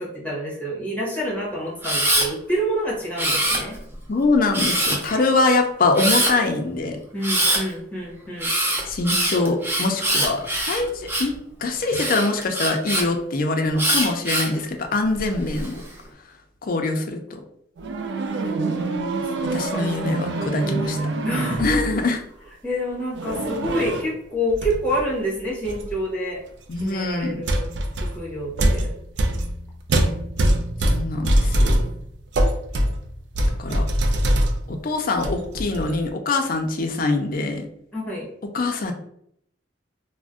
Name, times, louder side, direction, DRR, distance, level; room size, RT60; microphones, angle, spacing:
voice 1, 0.0-3.8 7.1-8.5 18.6-19.8 21.2-21.6 22.6-26.4 26.8-27.7 28.0-28.9 37.9-38.3, equal, 10° left, -5 dB, 1.0 m, -28 dB
Camera, 1.8-2.3 3.2-3.9 4.5-5.1 6.0-6.3 7.2-7.6 8.4-11.4 11.9-13.0 13.8-14.6 15.2-15.7, right 1 dB, 10° right, 0.5 m, -23 dB
voice 2, 4.1-7.0 8.9-11.3 11.6-15.8 16.6-17.4 19.5-21.1 21.6-22.2 26.7-27.4 30.9-31.8 33.6-33.8 34.7-37.7 38.5-38.9, left 3 dB, 50° left, 5 dB, 0.4 m, -23 dB
sound 1, 17.8-22.0 23.1-24.2 24.5-25.0 25.6-25.9 26.8-26.9 27.4-34.8 35.1-36.0, right 1 dB, 70° right, 0.4 m, -23 dB
2.5 x 2.1 x 3.5 m, 0.70 s
head